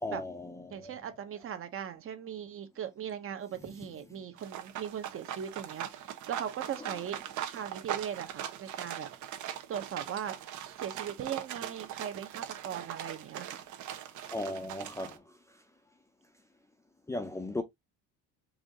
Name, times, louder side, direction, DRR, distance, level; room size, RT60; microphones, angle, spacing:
voice 1, 0.0-0.9 6.8-6.9 14.3-15.2 17.1-17.6, left 2 dB, 10° left, 0.6 m, -36 dB
voice 2, 0.7-7.2 7.5-9.1 9.7-10.3 10.8-13.6, right 9 dB, 40° right, 1.0 m, -39 dB
sound 1, 4.4-15.2, right 11 dB, 65° right, 1.1 m, -40 dB
4.8 x 2.7 x 3.6 m
cardioid pair, 130°, 32 cm